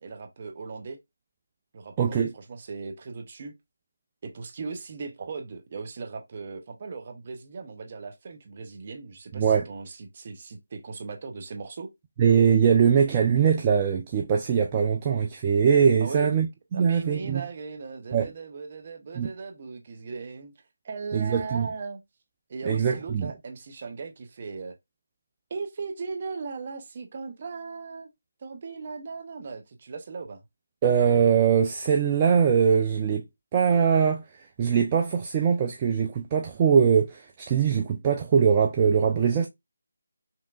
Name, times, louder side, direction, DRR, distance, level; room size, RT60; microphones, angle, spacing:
voice 1, 0.0-1.0 1.7-3.5 4.2-11.9 16.0-16.3 16.7-20.5 20.8-22.0 22.5-24.7 25.5-28.1 28.4-30.4, right 4 dB, 40° right, 0.7 m, -38 dB
voice 2, 2.0-2.3 9.3-9.6 12.2-16.5 16.7-17.4 18.1-18.3 19.1-19.3 21.1-21.7 22.6-23.3 30.8-33.2 33.5-39.5, right 7 dB, 25° right, 0.3 m, -22 dB
3.1 x 2.9 x 2.4 m
figure-of-eight pair, 160°, 0 cm